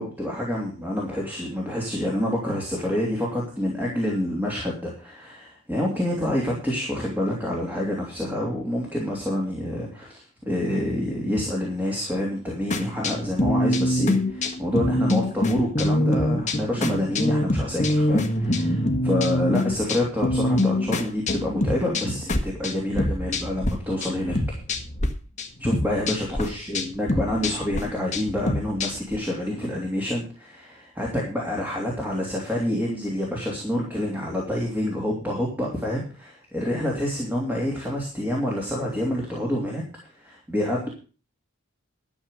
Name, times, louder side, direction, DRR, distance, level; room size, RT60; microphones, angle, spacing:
voice 1, 0.0-24.6 25.6-39.8 40.2-40.9, left 1 dB, 10° right, -2 dB, 3.0 m, -27 dB
sound 1, 12.7-23.7 24.0-25.1 25.4-29.2, left 1 dB, 30° left, 1.6 m, -25 dB
12.5 x 7.3 x 6.4 m, 0.36 s
head